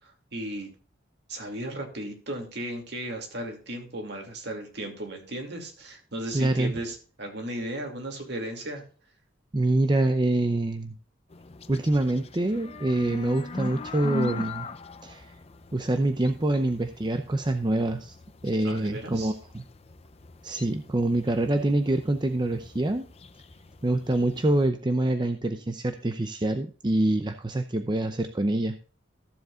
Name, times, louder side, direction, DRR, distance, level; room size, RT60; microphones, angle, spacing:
voice 1, 0.0-0.7 1.3-8.8 18.6-19.3, right 1 dB, 60° right, 3 dB, 2.6 m, -35 dB
voice 2, 6.3-6.8 9.5-11.0 11.7-14.7 15.0-15.3 15.7-18.1 18.4-19.6 20.4-23.1 23.8-28.8, right 2 dB, 25° right, 7 dB, 0.6 m, -26 dB
sound 1, 11.3-24.7, left 2 dB, 30° left, 0.6 m, -41 dB
14.5 x 7.8 x 2.5 m, 0.39 s
head